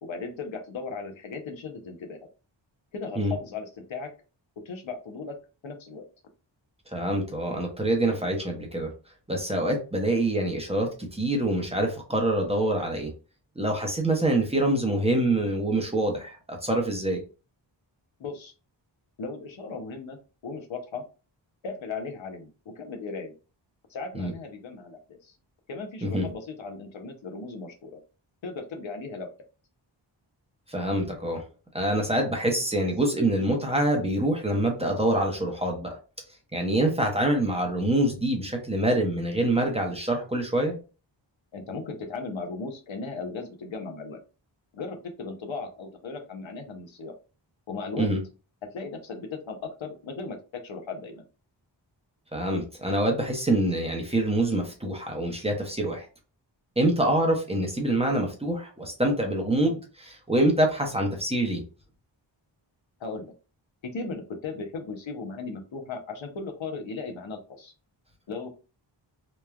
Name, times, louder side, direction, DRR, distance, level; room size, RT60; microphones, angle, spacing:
voice 1, 0.0-2.2 2.9-4.1 4.7-5.4 5.6-6.0 18.2-18.5 19.2-21.0 21.6-23.3 23.9-25.4 25.7-28.0 28.4-29.3 41.5-44.2 44.7-47.1 47.7-48.1 48.7-50.4 50.6-51.2 63.0-63.3 63.8-67.7 68.3-68.5, left 4 dB, 75° left, 4 dB, 0.7 m, -37 dB
voice 2, 6.9-8.9 9.3-13.1 13.6-17.2 24.1-24.3 26.0-26.2 30.7-31.4 31.7-35.9 36.5-40.7 48.0-48.2 52.3-56.1 56.8-61.6, right 1 dB, 15° right, 1 dB, 0.6 m, -25 dB
3.0 x 2.2 x 2.3 m, 0.34 s
wide cardioid pair, 110°, 46 cm